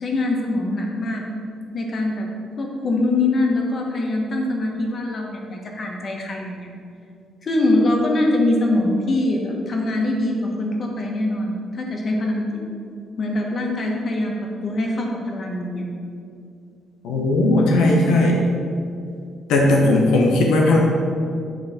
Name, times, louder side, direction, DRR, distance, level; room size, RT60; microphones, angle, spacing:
voice 1, 0.0-1.2 1.7-2.3 2.6-6.7 7.4-12.4 13.2-14.3 14.6-15.8 17.8-18.2, left 2 dB, 45° left, 0 dB, 1.3 m, -23 dB
voice 2, 17.0-18.4 19.5-20.8, left 2 dB, 90° left, -1 dB, 0.8 m, -17 dB
8.6 x 3.2 x 5.7 m, 2.4 s
cardioid pair, 90°, 0 cm